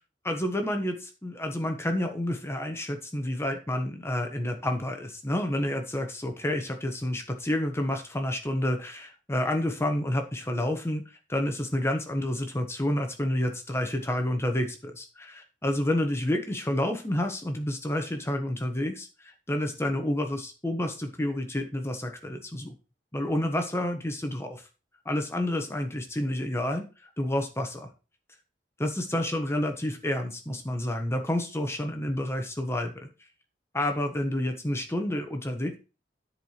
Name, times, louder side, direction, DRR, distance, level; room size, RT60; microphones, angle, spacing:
voice 1, 0.2-22.7 23.1-24.7 25.0-26.9 27.2-27.9 28.8-33.1 33.7-35.7, left 1 dB, 15° left, 5 dB, 1.3 m, -29 dB
10.5 x 4.8 x 5.8 m, 0.32 s
head